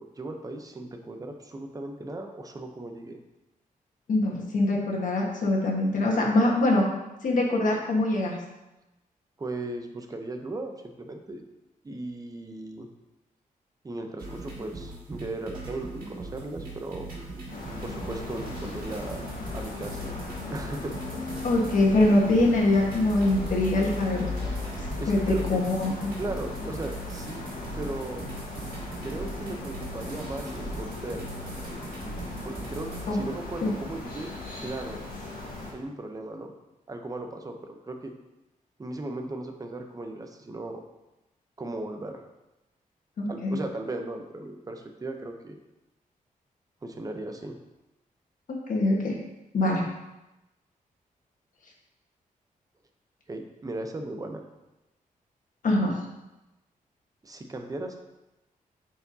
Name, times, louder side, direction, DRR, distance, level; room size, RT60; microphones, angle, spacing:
voice 1, 0.0-3.2 9.4-11.4 11.8-12.9 13.8-17.1 17.8-19.2 19.5-20.1 20.5-20.9 25.0-25.8 26.2-27.5 27.8-28.3 29.0-31.2 32.4-34.3 34.6-35.0 35.7-36.5 36.9-38.1 38.8-40.8 41.6-42.2 43.3-45.6 46.8-47.6 53.3-54.4 57.2-58.0, right 2 dB, 25° right, 4 dB, 0.8 m, -37 dB
voice 2, 4.1-6.9 7.2-8.4 21.4-24.3 25.1-26.1 33.1-33.2 33.6-33.7 43.2-43.6 48.5-49.1 49.5-49.8 55.6-55.9, left 2 dB, 65° left, -2 dB, 1.5 m, -23 dB
sound 1, 14.2-33.0, right 2 dB, 80° right, 2.0 m, -40 dB
sound 2, 17.5-35.7, left 3 dB, 85° left, 1.7 m, -37 dB
8.4 x 4.6 x 2.8 m, 0.98 s
wide cardioid pair, 105°, 15 cm